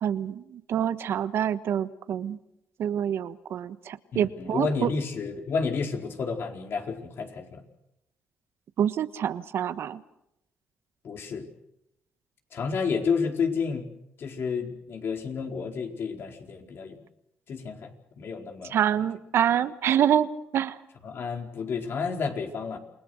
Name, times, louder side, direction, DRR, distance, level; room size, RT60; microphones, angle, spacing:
voice 1, 0.0-2.4 2.8-4.9 8.8-10.0 18.7-20.8, right 9 dB, 70° right, 13 dB, 1.3 m, -26 dB
voice 2, 4.1-7.6 11.0-11.5 12.5-13.9 14.2-17.0 17.5-17.9 18.2-18.7 21.0-22.8, left 5 dB, 60° left, 4 dB, 4.5 m, -30 dB
28.5 x 19.5 x 6.5 m, 0.81 s
cardioid pair, 75°, 4 cm